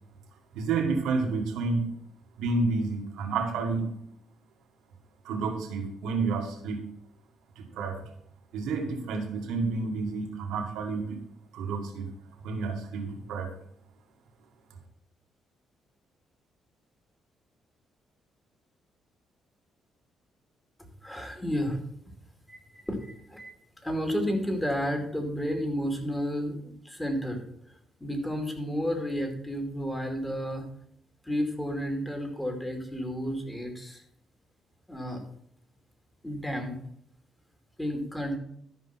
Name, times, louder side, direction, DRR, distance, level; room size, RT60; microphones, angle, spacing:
voice 1, 0.5-1.9 2.4-4.0 5.2-6.8 7.6-8.0 8.5-11.3 11.5-12.1 12.4-13.5, right 4 dB, 85° right, 3 dB, 2.0 m, -30 dB
voice 2, 21.0-21.8 22.5-23.5 23.8-30.6 31.2-34.0 34.9-35.2 36.2-36.8 37.8-38.4, equal, 10° left, 4 dB, 2.4 m, -32 dB
12.5 x 5.3 x 5.8 m, 0.71 s
cardioid pair, 90°, 0 cm